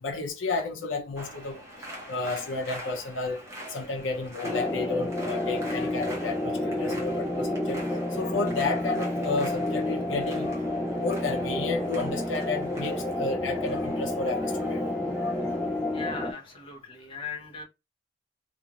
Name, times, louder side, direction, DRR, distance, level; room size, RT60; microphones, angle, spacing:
voice 1, 0.0-1.6 2.1-3.4 3.7-6.5 6.8-7.8 8.2-10.6 11.0-14.8 15.2-15.3, left 3 dB, 85° left, 0.6 m, -31 dB
sound 1, 1.2-16.6, equal, 15° right, 0.8 m, -45 dB
sound 2, 4.4-16.3, left 1 dB, 5° left, 0.3 m, -30 dB
voice 2, 15.9-17.6, left 4 dB, 30° left, 0.8 m, -39 dB
2.5 x 2.4 x 2.9 m
head